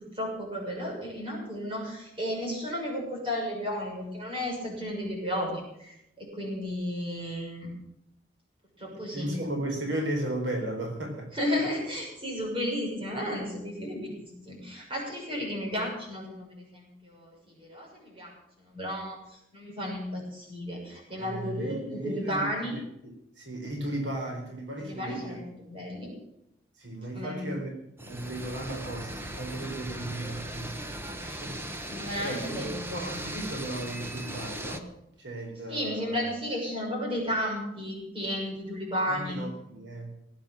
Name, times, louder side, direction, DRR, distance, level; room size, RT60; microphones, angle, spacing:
voice 1, 0.1-7.7 8.8-9.3 11.3-18.3 18.6-22.8 24.8-26.1 27.1-27.5 30.8-31.4 31.9-33.3 35.7-39.4, equal, 30° right, -1 dB, 6.4 m, -33 dB
voice 2, 8.9-11.3 21.1-22.7 23.0-25.4 26.8-27.7 28.0-31.7 32.2-34.9 35.2-36.2 39.1-40.1, right 1 dB, 90° right, 2 dB, 4.2 m, -35 dB
sound 1, 28.0-34.8, right 1 dB, 15° right, 1.1 m, -38 dB
18.5 x 8.9 x 7.4 m, 0.82 s
head